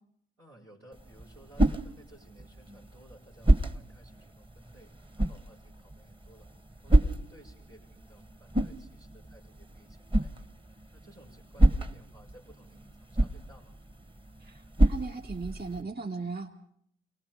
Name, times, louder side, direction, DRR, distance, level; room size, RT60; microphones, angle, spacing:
voice 1, 0.4-6.5 6.8-10.5 10.9-13.8, right 1 dB, 90° right, -7 dB, 4.5 m, -57 dB
Multiple Swooshes, 0.9-15.8, right 1 dB, 15° right, 1.1 m, -29 dB
voice 2, 14.4-16.5, right 4 dB, 35° right, 2 dB, 2.6 m, -37 dB
28.5 x 19.0 x 5.0 m, 0.69 s
hypercardioid pair, 40°, 29 cm